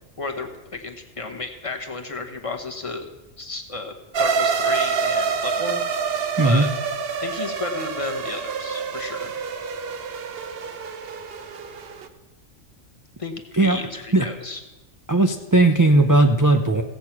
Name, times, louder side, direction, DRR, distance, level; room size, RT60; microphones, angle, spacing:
voice 1, 0.2-3.1 3.4-5.8 6.4-6.7 7.2-9.3 13.2-14.6, left 3 dB, 25° left, 2 dB, 1.1 m, -33 dB
sound 1, 4.1-12.1, right 5 dB, 55° right, 0.9 m, -27 dB
voice 2, 15.1-16.8, right 2 dB, 30° right, 4 dB, 0.3 m, -17 dB
16.0 x 7.9 x 5.9 m, 1.1 s
omnidirectional pair, 1.3 m